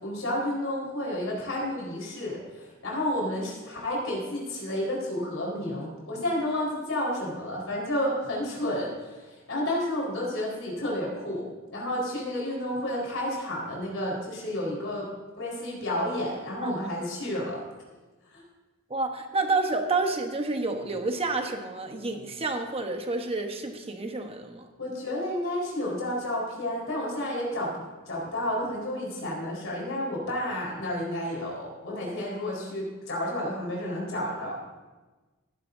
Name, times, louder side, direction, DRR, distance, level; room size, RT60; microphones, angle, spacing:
voice 1, 0.0-11.5 11.7-15.1 15.4-17.6 18.3-18.4 24.8-34.6, left 1 dB, 70° left, -3 dB, 4.4 m, -31 dB
voice 2, 18.9-24.7, right 3 dB, 30° right, 5 dB, 1.1 m, -29 dB
17.5 x 10.5 x 2.7 m, 1.3 s
head